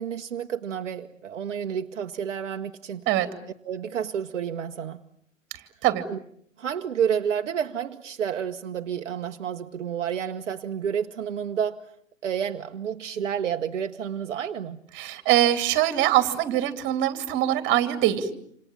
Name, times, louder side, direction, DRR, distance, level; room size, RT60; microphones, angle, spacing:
voice 1, 0.0-3.0 3.6-5.0 6.1-6.2 6.6-11.8 12.2-14.8, right 8 dB, 65° right, 1.2 m, -30 dB
voice 2, 14.9-18.3, right 13 dB, 30° right, 2.7 m, -23 dB
28.0 x 26.5 x 7.3 m
figure-of-eight pair, 110°, 39 cm